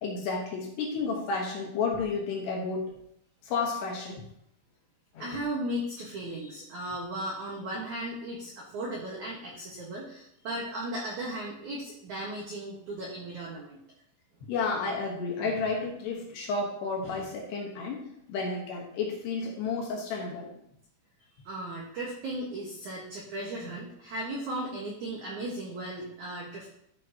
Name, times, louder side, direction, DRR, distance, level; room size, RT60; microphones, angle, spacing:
voice 1, 0.0-3.0 3.4-4.3 5.1-5.4 14.5-18.0 18.3-20.5, left 4 dB, 70° left, 0 dB, 3.2 m, -31 dB
voice 2, 5.2-13.8 15.4-15.5 21.4-26.7, right 1 dB, 65° right, -3 dB, 2.0 m, -36 dB
13.0 x 6.8 x 2.9 m, 0.74 s
omnidirectional pair, 5.4 m